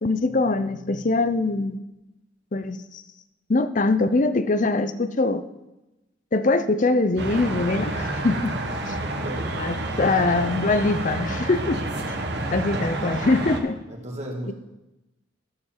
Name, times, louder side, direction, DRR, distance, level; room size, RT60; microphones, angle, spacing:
voice 1, 0.0-1.8 2.5-3.0 3.5-5.4 6.3-8.6 8.9-9.0 9.6-12.2 12.5-13.8 14.5-14.6, left 3 dB, 40° left, 11 dB, 0.6 m, -23 dB
sound 1, 7.2-13.6, right 2 dB, 60° right, 1.3 m, -29 dB
voice 2, 9.0-9.7 13.9-14.5, right 1 dB, 35° right, 1 dB, 1.8 m, -34 dB
11.0 x 6.9 x 7.4 m, 0.99 s
head